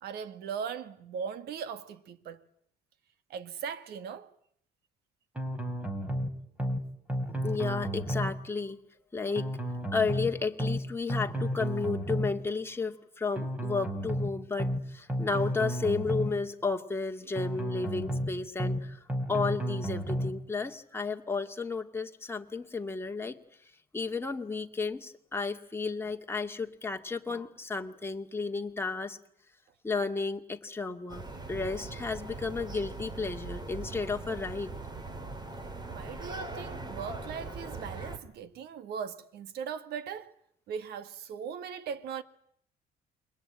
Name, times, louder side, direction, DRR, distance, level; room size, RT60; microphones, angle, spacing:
voice 1, 0.0-2.4 3.3-4.3 35.9-40.3 40.7-42.2, right 7 dB, 75° right, 2.0 m, -39 dB
sound 1, 5.4-6.3 6.6-6.8 7.1-8.3 9.4-10.3 10.6-10.8 11.1-12.3 13.4-14.3 14.6-14.8 15.1-16.3 17.4-18.3 18.6-18.8 19.1-20.3, equal, 10° right, 4.0 m, -32 dB
voice 2, 7.4-8.8 9.1-9.5 9.9-19.0 19.3-23.4 23.9-29.2 29.8-34.7, left 4 dB, 15° left, 2.2 m, -33 dB
sound 2, 31.1-38.2, right 3 dB, 25° right, 3.2 m, -40 dB
28.5 x 23.0 x 9.0 m
cardioid pair, 110°, 17 cm